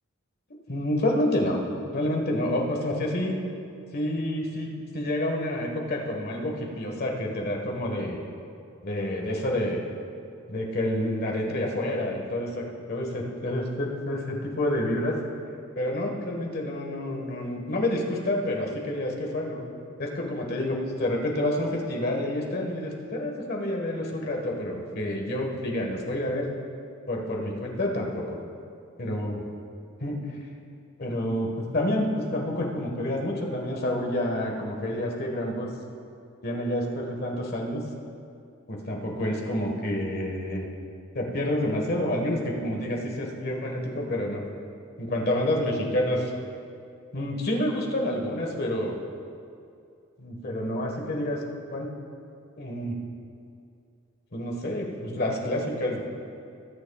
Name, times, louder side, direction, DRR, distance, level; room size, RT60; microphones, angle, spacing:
voice 1, 0.7-1.6 1.9-3.4 3.9-8.2 8.8-9.8 10.5-15.1 15.8-19.6 20.0-26.5 27.1-28.4 29.0-29.4 30.0-30.3 31.0-35.7 36.4-37.8 38.7-40.7 41.1-44.4 45.0-46.3 47.1-49.0 50.2-51.4 51.7-51.9 52.6-53.0 54.3-56.0, left 1 dB, 45° left, 0 dB, 1.5 m, -28 dB
19.0 x 9.4 x 2.4 m, 2.4 s
head